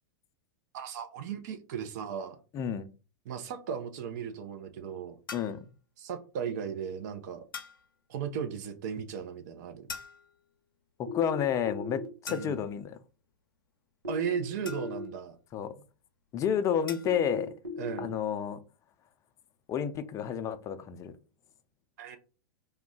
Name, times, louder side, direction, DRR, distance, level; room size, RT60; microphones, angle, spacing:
voice 1, 0.7-2.4 3.3-5.2 6.0-7.4 8.1-9.9 12.3-12.5 14.1-15.3 17.8-18.1 22.0-22.2, right 7 dB, 55° right, 0.5 m, -36 dB
voice 2, 2.5-2.9 5.3-5.6 11.1-13.0 15.5-15.7 16.3-17.5 18.0-18.6 19.7-21.1, left 8 dB, 30° left, 0.4 m, -30 dB
sound 1, 5.3-5.7 7.5-7.9 9.9-10.5 12.3-12.8 14.7-15.2 16.9-17.2, left 5 dB, 85° left, 0.5 m, -43 dB
sound 2, 11.1-12.1 14.0-15.1 17.0-18.1, left 3 dB, 85° right, 0.8 m, -38 dB
2.3 x 2.1 x 3.6 m
hypercardioid pair, 100°, 11 cm